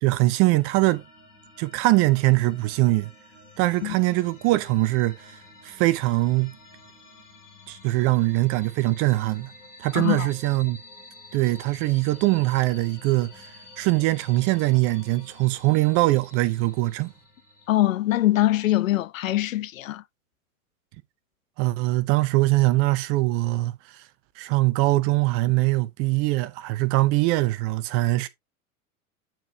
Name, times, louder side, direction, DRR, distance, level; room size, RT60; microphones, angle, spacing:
voice 1, 0.0-1.0 1.6-3.1 3.6-5.2 5.6-6.5 7.7-9.5 9.8-10.8 11.3-13.4 13.8-17.1 21.6-23.7 24.4-28.3, right 19 dB, 30° right, 0.6 m, -22 dB
sound 1, 0.6-17.8, left 3 dB, 90° left, 3.1 m, -49 dB
voice 2, 9.9-10.3 17.7-20.0, left 15 dB, 65° left, 0.6 m, -23 dB
8.9 x 4.4 x 2.7 m
figure-of-eight pair, 90°, 44 cm